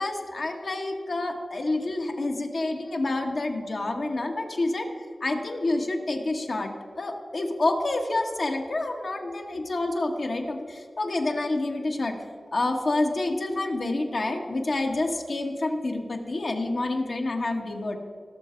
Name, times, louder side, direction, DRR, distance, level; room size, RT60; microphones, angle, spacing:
voice 1, 0.0-4.9 5.2-6.7 7.0-12.2 12.5-18.0, left 2 dB, 60° left, 3 dB, 1.4 m, -28 dB
18.0 x 6.8 x 4.5 m, 2.2 s
wide cardioid pair, 90°, 0 cm